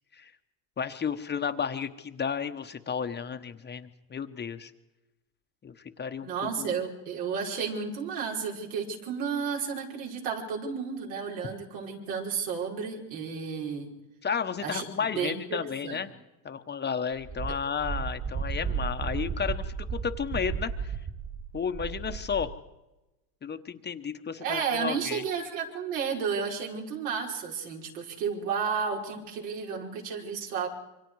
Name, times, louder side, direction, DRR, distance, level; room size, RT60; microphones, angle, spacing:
voice 1, 0.8-4.7 5.6-6.8 14.2-16.1 16.4-21.0 21.5-22.6 23.4-25.2, left 6 dB, 20° left, 8 dB, 1.0 m, -33 dB
voice 2, 6.2-13.9 14.6-15.3 15.8-16.0 24.4-30.7, right 6 dB, 80° right, -1 dB, 5.3 m, -32 dB
Wind, 17.2-22.5, right 6 dB, 30° right, 2.4 m, -34 dB
27.5 x 24.5 x 4.8 m, 1.0 s
supercardioid pair, 115°, 47 cm